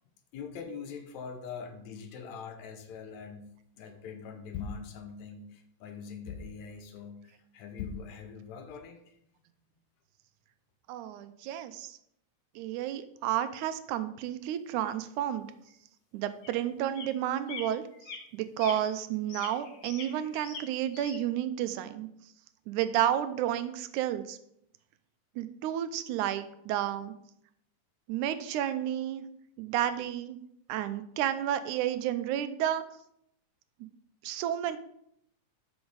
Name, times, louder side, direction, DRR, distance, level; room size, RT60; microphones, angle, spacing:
voice 1, 0.3-3.5 3.8-9.2, left 6 dB, 75° left, 6 dB, 2.0 m, -42 dB
voice 2, 10.9-12.0 12.6-15.5 16.1-17.8 18.3-22.1 22.7-24.4 25.4-27.1 28.1-29.2 29.6-30.4 30.7-32.8 34.2-34.8, right 11 dB, 85° right, 11 dB, 2.0 m, -31 dB
sound 1, 14.8-14.9 15.7-15.8 16.4-16.6 17.0-17.2 17.5-17.7 17.9-18.2 18.6-18.8 19.3-20.6 20.9-21.2, left 4 dB, 60° left, 2.3 m, -43 dB
8.0 x 6.1 x 3.9 m, 0.74 s
omnidirectional pair, 3.5 m